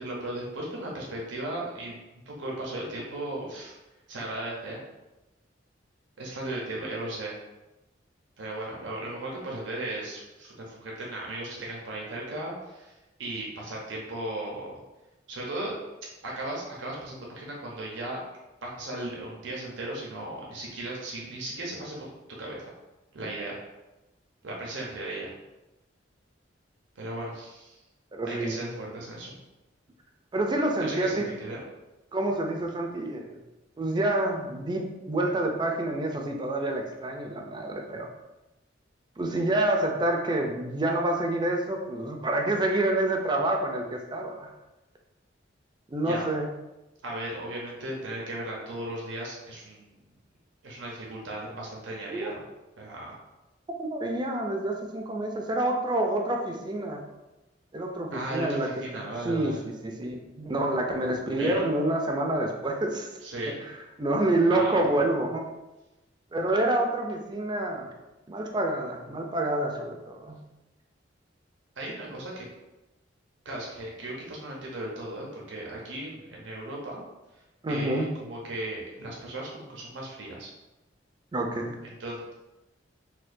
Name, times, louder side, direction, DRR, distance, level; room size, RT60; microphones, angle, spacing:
voice 1, 0.0-2.0 2.3-3.7 4.1-4.8 6.2-7.3 8.4-14.8 15.3-15.7 16.2-18.2 18.6-22.1 22.4-22.7 23.1-23.6 24.4-25.3 27.0-27.8 28.2-29.4 30.8-31.6 46.0-46.2 47.0-50.1 50.6-52.4 52.8-53.2 58.1-59.6 61.4-61.6 63.2-63.6 64.5-64.8 71.8-72.5 73.4-77.0 77.7-80.5 82.0-82.4, right 1 dB, 90° right, -3 dB, 0.7 m, -36 dB
voice 2, 28.1-28.7 30.3-31.3 32.1-33.4 33.8-38.1 39.2-44.5 45.9-46.5 52.1-52.3 53.8-57.0 57.7-58.7 58.9-63.1 64.0-65.5 66.3-67.9 68.3-70.4 77.6-78.1 81.3-81.8, right 1 dB, 25° right, 2 dB, 0.4 m, -28 dB
4.3 x 2.2 x 2.6 m, 1.0 s
head